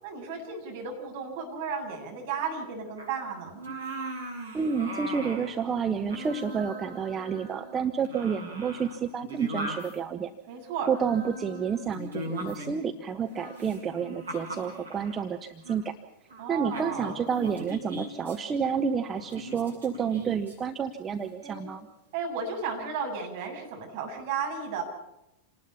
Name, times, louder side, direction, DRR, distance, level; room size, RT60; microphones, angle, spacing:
voice 1, 0.0-3.6 10.5-10.9 16.4-17.2 22.1-24.8, right 5 dB, 50° right, 1 dB, 7.4 m, -34 dB
sound 1, 3.0-3.2 3.5-5.5 5.9-7.8 8.0-10.0 10.9-12.9 13.3-15.2 15.6-15.8 16.3-16.4 16.7-18.4 19.1-20.5 21.4-21.7, right 1 dB, 75° right, 7.7 m, -39 dB
voice 2, 4.5-10.3 10.8-15.9 16.5-21.9, right 6 dB, 20° right, 6 dB, 1.1 m, -30 dB
28.0 x 19.5 x 5.7 m, 0.86 s
figure-of-eight pair, 90°, 0 cm